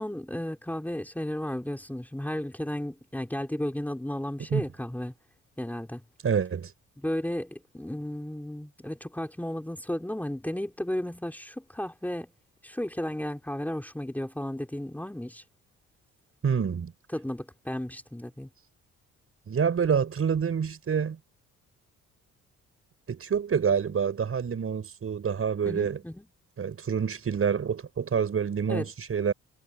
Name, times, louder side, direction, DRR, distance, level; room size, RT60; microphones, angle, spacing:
voice 1, 0.0-5.1 5.6-6.0 7.0-12.3 12.6-15.4 17.1-18.5 25.6-26.2 28.7-28.9, left 1 dB, 5° left, 4.0 m, -34 dB
voice 2, 6.2-6.7 16.4-16.9 19.5-21.2 23.1-26.0 26.6-29.3, right 7 dB, 45° right, 6.1 m, -27 dB
cardioid pair, 90°, 30 cm